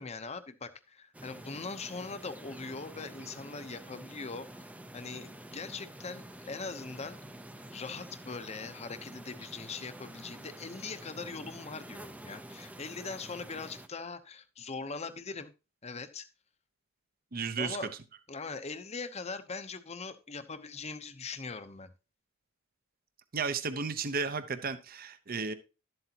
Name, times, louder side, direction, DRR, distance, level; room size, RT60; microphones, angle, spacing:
voice 1, 0.0-4.7 4.9-7.2 7.7-15.5 15.8-16.3 17.6-17.9 18.3-21.9, left 4 dB, 30° left, 11 dB, 0.8 m, -41 dB
sound 1, 1.1-13.9, right 1 dB, 5° right, 0.5 m, -48 dB
voice 2, 17.3-17.8 23.3-25.5, right 5 dB, 45° right, 11 dB, 0.8 m, -33 dB
12.0 x 7.9 x 2.9 m, 0.29 s
head